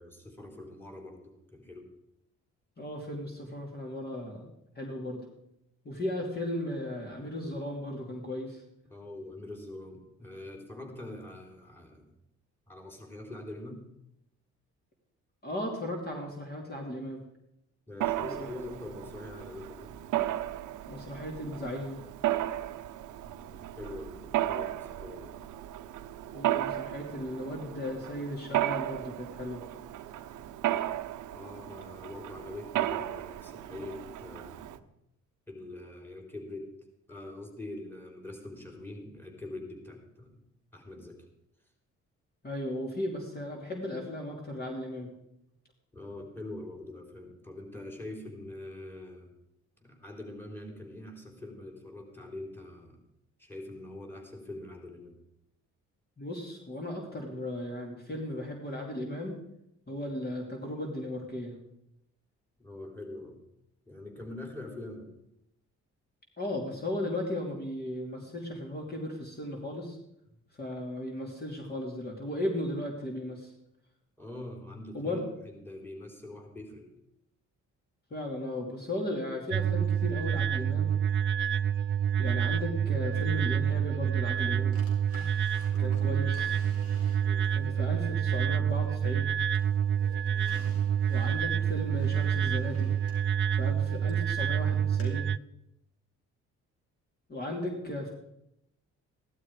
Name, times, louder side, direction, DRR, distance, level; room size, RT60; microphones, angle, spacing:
voice 1, 0.0-1.9 8.9-12.1 12.7-13.9 17.9-20.0 23.3-25.4 31.3-34.9 35.5-36.7 37.1-40.4 40.7-41.3 45.9-49.3 49.8-53.0 53.4-55.2 62.6-63.4 63.9-65.1 74.2-76.9 85.7-86.3 87.3-87.5 90.3-90.7, left 2 dB, 5° left, 2 dB, 3.8 m, -44 dB
voice 2, 2.8-4.5 4.7-5.2 5.8-8.6 15.4-17.2 18.2-18.5 20.9-22.0 26.3-29.6 42.4-45.1 56.2-59.4 59.9-61.5 66.4-70.0 70.5-73.5 74.9-75.2 78.1-80.9 82.2-84.8 85.8-86.5 87.5-89.3 91.1-92.9 93.6-95.3 97.3-98.1, left 1 dB, 30° left, 1 dB, 2.9 m, -36 dB
Mechanisms, 18.0-34.8, right 13 dB, 80° right, 0.8 m, -35 dB
sound 1, 79.5-95.4, right 9 dB, 40° right, 0.4 m, -28 dB
Drawer open or close, 84.7-87.6 88.1-89.2 89.5-94.3 95.0-95.1, left 2 dB, 50° left, 4.6 m, -53 dB
15.5 x 12.0 x 4.9 m, 0.82 s
cardioid pair, 90°, 30 cm